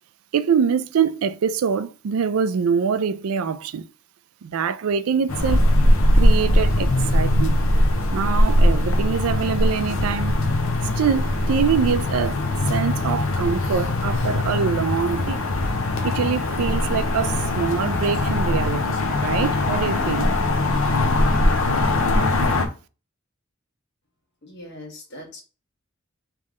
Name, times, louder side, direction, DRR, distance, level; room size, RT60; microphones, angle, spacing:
voice 1, 0.3-3.8 4.4-5.6 6.1-7.6 8.1-10.3 11.0-15.4 16.0-20.3, right 6 dB, 90° right, 0.4 m, -24 dB
sound 1, 5.3-22.7, left 1 dB, 75° left, 0.7 m, -21 dB
voice 2, 24.4-25.4, left 1 dB, 55° left, 1.3 m, -40 dB
3.6 x 3.2 x 3.7 m
head